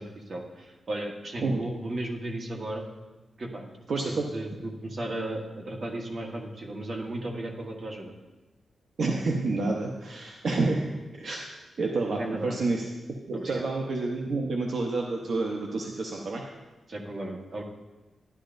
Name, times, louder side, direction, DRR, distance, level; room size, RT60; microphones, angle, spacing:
voice 1, 0.0-2.9 3.4-3.7 4.0-8.1 12.1-12.6 13.3-13.7 16.9-17.6, right 1 dB, 40° right, 0 dB, 1.3 m, -35 dB
voice 2, 3.9-4.3 9.0-11.4 11.8-12.8 13.3-16.4, right 3 dB, 60° right, 0 dB, 0.8 m, -29 dB
11.5 x 11.0 x 2.6 m, 1.2 s
wide cardioid pair, 150°, 0 cm